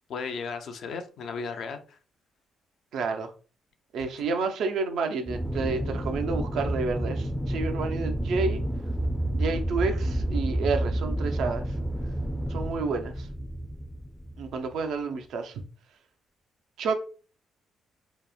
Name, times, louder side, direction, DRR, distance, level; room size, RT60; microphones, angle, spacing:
voice 1, 0.1-2.0, left 5 dB, 65° left, 0.4 m, -35 dB
voice 2, 2.9-3.3 3.9-8.6 9.3-11.8 12.5-13.3 14.4-15.6 16.8-16.9, right 4 dB, 75° right, 0.4 m, -30 dB
Aircraft, 5.3-14.7, right 1 dB, ahead, 0.4 m, -30 dB
2.9 x 2.0 x 2.3 m
cardioid pair, 90°, 0 cm